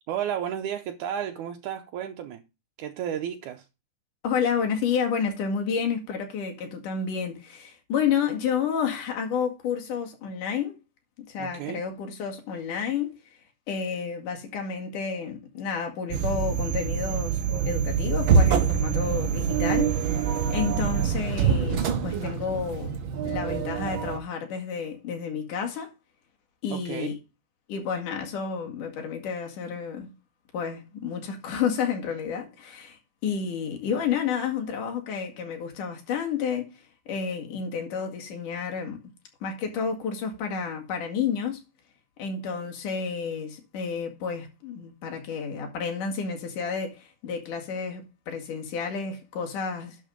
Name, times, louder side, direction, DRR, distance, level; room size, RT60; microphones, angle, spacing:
voice 1, 0.1-2.4 2.8-3.7 11.4-11.8 26.7-27.2, right 9 dB, 75° right, 2.2 m, -32 dB
voice 2, 4.2-10.8 11.2-13.1 13.7-22.9 23.2-25.9 26.6-27.2 27.7-30.1 30.5-36.7 37.1-39.0 39.4-41.6 42.2-50.0, left 6 dB, 75° left, 3.6 m, -30 dB
sound 1, 16.1-24.2, right 6 dB, 60° right, 1.4 m, -25 dB
11.5 x 5.3 x 5.0 m
omnidirectional pair, 3.7 m